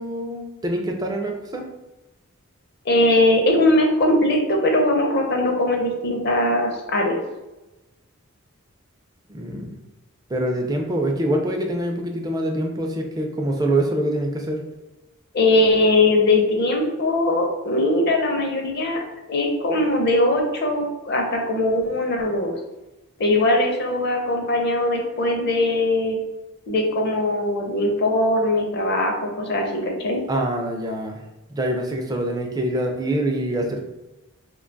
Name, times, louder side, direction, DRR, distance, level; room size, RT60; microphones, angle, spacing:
voice 1, 0.0-1.7 9.3-9.8 10.3-14.6 30.3-31.2 31.5-33.8, right 1 dB, 15° right, 2 dB, 0.3 m, -25 dB
voice 2, 2.9-7.2 15.3-19.0 19.3-22.5 23.2-26.2 26.7-30.2, left 1 dB, 50° left, 2 dB, 0.6 m, -20 dB
2.8 x 2.2 x 3.8 m, 1.0 s
head